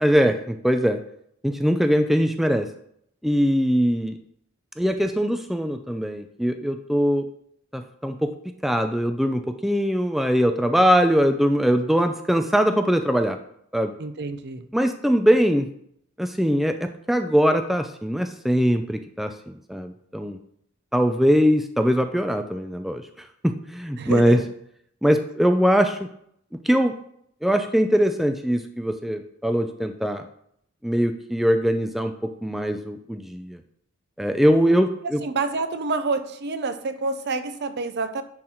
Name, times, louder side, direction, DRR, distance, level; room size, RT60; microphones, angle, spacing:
voice 1, 0.0-1.0 1.4-2.7 3.2-4.2 4.8-7.3 7.7-8.3 8.6-13.4 13.7-13.9 14.7-15.7 16.2-20.4 20.9-23.0 23.4-24.4 25.0-26.0 26.6-27.0 27.4-30.3 30.8-33.6 34.2-35.2, equal, ahead, 7 dB, 0.4 m, -21 dB
voice 2, 14.0-14.6 24.0-24.4 35.0-38.2, right 3 dB, 55° right, 10 dB, 0.6 m, -28 dB
10.0 x 3.9 x 4.4 m, 0.71 s
head